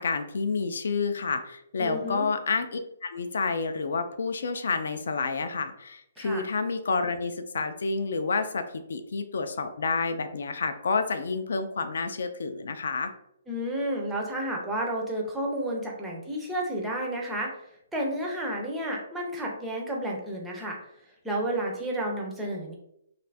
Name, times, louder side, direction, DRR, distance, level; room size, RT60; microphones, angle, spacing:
voice 1, 0.0-13.1, left 4 dB, 65° left, 9 dB, 0.4 m, -29 dB
voice 2, 1.8-2.3 6.2-6.4 13.5-17.5 17.9-20.8 21.2-22.7, right 1 dB, 5° right, -1 dB, 0.4 m, -31 dB
2.6 x 2.4 x 3.3 m, 0.75 s
hypercardioid pair, 175°, 0 cm